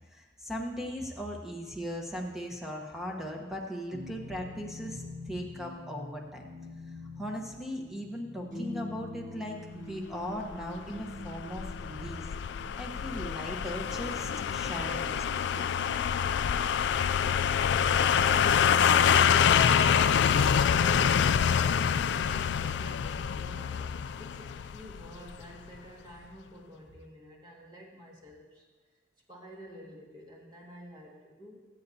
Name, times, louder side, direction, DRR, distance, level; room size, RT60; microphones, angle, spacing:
voice 1, 0.1-6.5 6.9-9.6 9.9-12.3 12.8-15.2 15.5-15.7, equal, ahead, 0 dB, 1.0 m, -38 dB
sound 1, 3.9-16.4, left 2 dB, 45° right, 1.5 m, -45 dB
sound 2, 10.5-25.4 25.7-25.8, left 8 dB, 75° left, 0.3 m, -26 dB
voice 2, 22.0-28.7 29.3-31.7, equal, 25° right, -3 dB, 1.9 m, -50 dB
21.5 x 8.3 x 2.8 m, 1.3 s
head